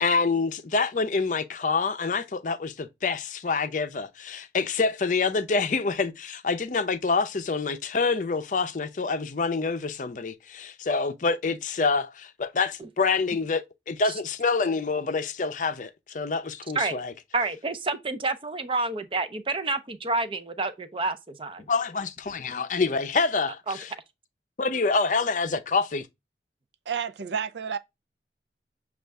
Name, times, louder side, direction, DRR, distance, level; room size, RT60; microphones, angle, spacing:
voice 1, 0.0-17.1 21.7-23.9 24.6-26.1, left 4 dB, 45° left, 0.5 m, -27 dB
voice 2, 17.3-21.6 23.7-23.8, right 3 dB, 30° right, 0.5 m, -29 dB
voice 3, 26.9-27.8, right 7 dB, 80° right, 0.5 m, -30 dB
6.5 x 2.4 x 3.4 m
head